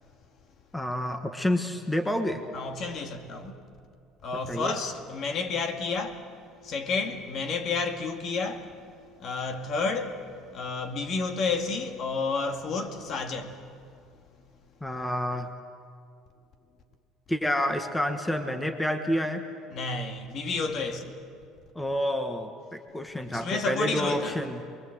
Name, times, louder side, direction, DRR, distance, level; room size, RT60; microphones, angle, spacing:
voice 1, 0.7-2.4 4.5-4.7 14.8-15.5 17.3-19.4 21.7-24.6, equal, 5° left, 1.3 m, -29 dB
voice 2, 2.5-3.6 4.2-6.3 6.6-8.8 9.2-13.7 19.7-21.2 23.2-24.6, left 4 dB, 50° left, 2.0 m, -31 dB
27.5 x 21.5 x 7.9 m
cardioid pair, 125°, 0 cm